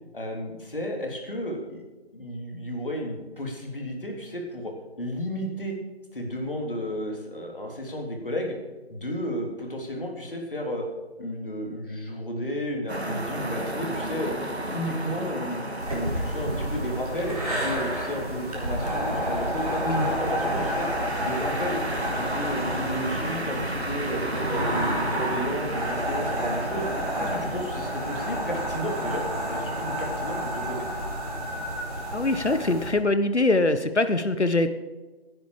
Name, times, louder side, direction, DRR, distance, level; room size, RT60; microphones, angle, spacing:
voice 1, 0.1-1.8 2.1-5.8 6.1-8.6 8.9-10.9 11.2-14.3 14.7-15.6 15.9-20.9 21.2-21.8 22.1-26.9 27.2-30.9, equal, 50° left, 1 dB, 3.4 m, -33 dB
sound 1, 12.9-29.2, right 1 dB, 70° right, 2.1 m, -34 dB
sound 2, 15.8-32.9, equal, 35° right, 4.0 m, -30 dB
voice 2, 32.1-34.8, left 2 dB, 85° left, 10 dB, 1.2 m, -23 dB
17.5 x 10.5 x 4.9 m, 1.2 s
figure-of-eight pair, 165°, 33 cm